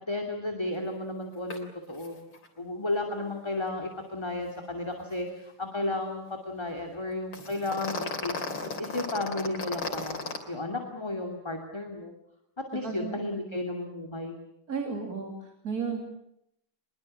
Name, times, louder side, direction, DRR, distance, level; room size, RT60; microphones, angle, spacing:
voice 1, 0.0-2.2 2.6-8.5 8.8-12.1 12.7-14.3, left 2 dB, 15° left, 3 dB, 2.5 m, -33 dB
sound 1, 1.5-1.6 1.9-2.1 2.3-2.5 7.3-10.4, left 3 dB, 90° left, 4.2 m, -34 dB
voice 2, 12.8-13.2 14.7-16.0, right 5 dB, 45° right, 3 dB, 3.5 m, -33 dB
24.0 x 22.5 x 8.7 m, 0.77 s
omnidirectional pair, 2.2 m